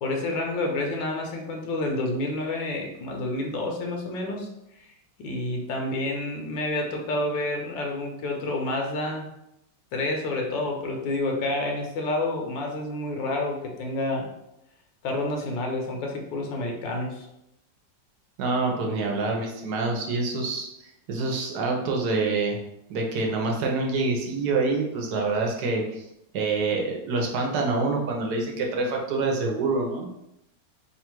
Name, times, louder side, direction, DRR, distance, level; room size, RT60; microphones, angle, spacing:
voice 1, 0.0-4.5 4.8-4.9 5.2-9.3 9.9-14.3 15.0-17.3, left 2 dB, 80° left, 1 dB, 1.4 m, -29 dB
voice 2, 18.4-22.6 22.9-26.1 26.3-30.1, right 3 dB, 65° right, 0 dB, 1.2 m, -26 dB
3.5 x 2.4 x 4.4 m, 0.84 s
omnidirectional pair, 2.0 m